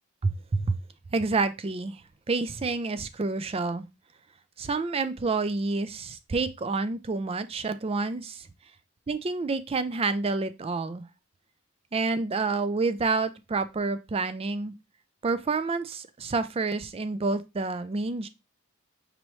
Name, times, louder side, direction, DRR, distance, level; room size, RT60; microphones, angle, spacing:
voice 1, 0.2-0.8 1.1-2.0 2.3-3.9 4.6-8.5 9.1-11.1 11.9-14.7 15.2-18.3, right 3 dB, 30° right, 0.4 m, -28 dB
5.3 x 3.0 x 3.0 m
head